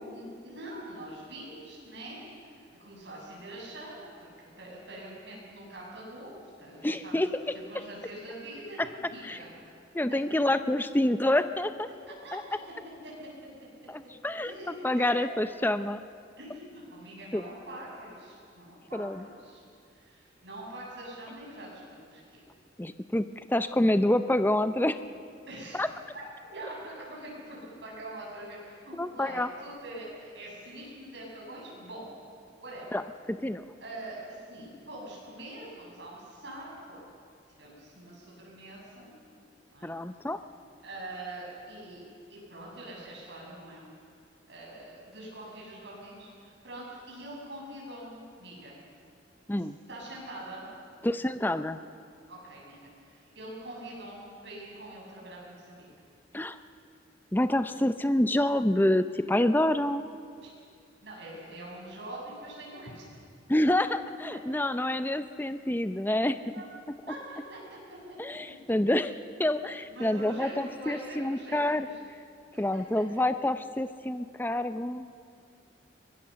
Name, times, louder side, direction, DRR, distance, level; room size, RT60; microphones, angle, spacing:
voice 1, 0.1-6.3 6.6-7.2 7.7-9.7 10.1-10.2 11.9-12.6 13.0-13.1 14.4-15.3 16.4-19.6 19.9-22.2 25.5-25.8 26.1-32.1 32.6-32.9 33.8-37.0 37.6-39.2 39.7-39.9 40.8-42.0 42.3-43.9 44.5-48.8 49.6-50.7 52.3-55.9 60.4-60.5 61.0-63.0 66.5-66.7 67.1-68.2 69.9-72.0 72.5-73.0, right 1 dB, 65° right, -4 dB, 7.5 m, -44 dB
voice 2, 6.8-7.3 9.2-9.4 9.9-11.9 12.3-12.4 13.9-16.0 17.3-17.4 18.9-19.2 22.8-25.0 25.7-25.9 28.9-29.5 32.9-33.0 33.3-33.6 39.8-40.4 49.5-49.8 51.0-51.8 56.3-56.6 57.3-60.1 63.5-66.4 68.2-69.1 69.4-71.9 72.6-75.1, left 1 dB, 10° left, 10 dB, 0.5 m, -27 dB
23.0 x 20.0 x 6.9 m, 2.3 s
head